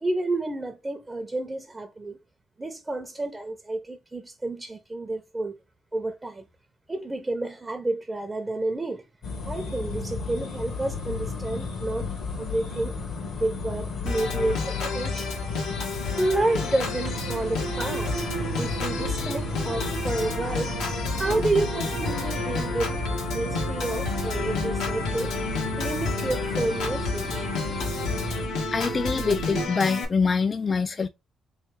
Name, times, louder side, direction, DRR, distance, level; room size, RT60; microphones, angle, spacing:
voice 1, 0.0-2.2 2.6-5.6 5.9-6.4 6.9-9.0 9.5-12.9 13.4-15.4 16.2-18.1 18.6-20.7 21.2-23.0 23.3-25.3 25.8-27.5, right 2 dB, 20° right, 0.6 m, -30 dB
sound 1, 9.2-28.5, left 4 dB, 70° left, 1.3 m, -34 dB
Organ, 14.1-30.1, left 4 dB, 90° left, 1.1 m, -31 dB
sound 2, 17.0-29.7, right 8 dB, 75° right, 0.5 m, -35 dB
voice 2, 28.7-31.1, left 5 dB, 35° left, 0.3 m, -25 dB
3.3 x 3.2 x 3.3 m
cardioid pair, 90°, 0 cm